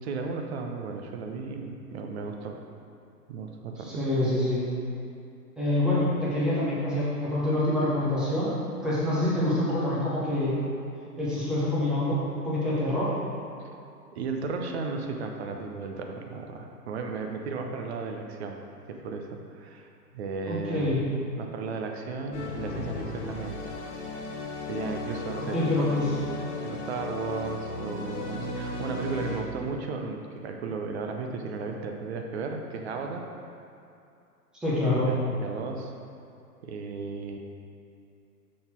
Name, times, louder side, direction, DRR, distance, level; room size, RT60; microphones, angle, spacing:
voice 1, 0.0-2.6 3.3-4.2 14.1-18.6 18.9-21.0 21.4-23.6 24.7-26.0 26.6-33.2 34.8-35.9 36.6-37.4, right 4 dB, 40° right, 3 dB, 0.6 m, -35 dB
voice 2, 3.8-4.7 5.6-8.5 8.8-10.6 11.2-12.2 12.4-13.1 20.5-21.0 25.5-26.1 34.5-35.1, left 1 dB, ahead, -9 dB, 0.5 m, -26 dB
sound 1, 22.3-29.4, left 2 dB, 45° left, 0.9 m, -35 dB
6.3 x 4.0 x 4.4 m, 2.6 s
figure-of-eight pair, 120°, 49 cm